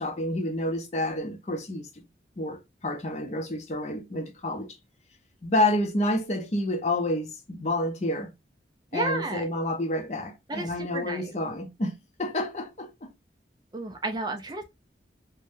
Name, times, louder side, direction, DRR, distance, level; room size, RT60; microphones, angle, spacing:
voice 1, 0.0-2.0 2.4-4.8 5.4-8.3 8.9-13.1, left 1 dB, 40° left, 0.6 m, -29 dB
voice 2, 8.9-9.5 10.5-11.3 13.7-14.6, right 2 dB, 25° right, 0.4 m, -32 dB
3.4 x 2.1 x 2.5 m
head